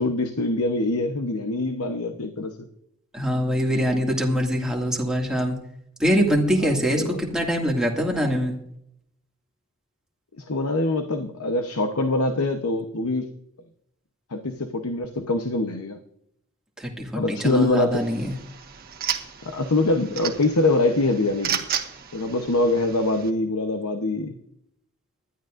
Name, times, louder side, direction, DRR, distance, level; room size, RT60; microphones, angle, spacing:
voice 1, 0.0-2.7 7.0-7.2 10.4-13.3 14.3-16.0 17.2-18.0 19.4-21.6 22.1-24.4, left 2 dB, 85° left, 6 dB, 1.0 m, -24 dB
voice 2, 3.1-5.6 6.0-8.6 16.8-18.4, equal, 5° right, -1 dB, 2.2 m, -23 dB
sound 1, 17.9-23.3, right 8 dB, 45° right, 1.4 m, -33 dB
20.0 x 12.5 x 2.6 m, 0.75 s
head